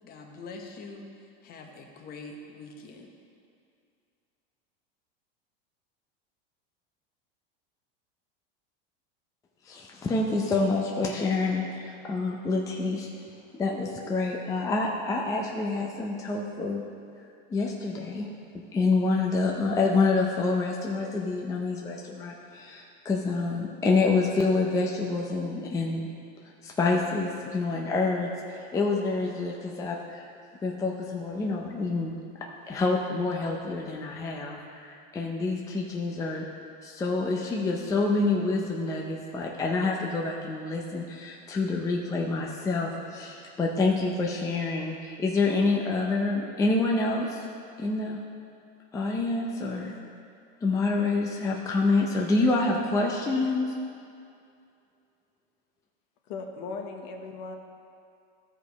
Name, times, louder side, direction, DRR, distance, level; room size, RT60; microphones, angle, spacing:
voice 1, 0.0-3.1, left 3 dB, 30° left, 2 dB, 1.0 m, -44 dB
voice 2, 9.7-13.1 13.5-16.8 17.5-18.3 18.5-26.1 26.6-30.2 30.6-32.1 32.7-36.5 36.8-47.5 47.8-48.2 48.9-49.9 50.6-53.7, left 3 dB, 10° left, -1 dB, 0.5 m, -27 dB
voice 3, 56.3-57.6, left 4 dB, 55° left, 3 dB, 1.0 m, -37 dB
14.0 x 5.0 x 4.0 m, 2.4 s
supercardioid pair, 145°, 30 cm